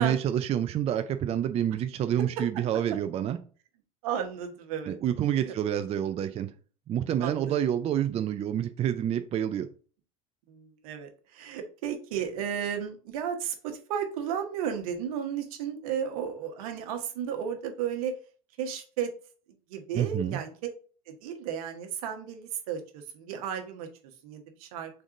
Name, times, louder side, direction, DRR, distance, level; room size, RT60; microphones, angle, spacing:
voice 1, 0.0-3.4 4.9-6.5 6.9-9.7 19.9-20.4, right 10 dB, 35° right, 9 dB, 0.4 m, -28 dB
voice 2, 4.0-5.0 5.4-5.5 7.2-7.6 10.5-18.1 18.6-19.1 19.7-20.7 21.1-23.9 24.2-24.9, right 8 dB, 75° right, 5 dB, 1.1 m, -33 dB
3.9 x 3.6 x 3.7 m, 0.40 s
hypercardioid pair, 90°, 18 cm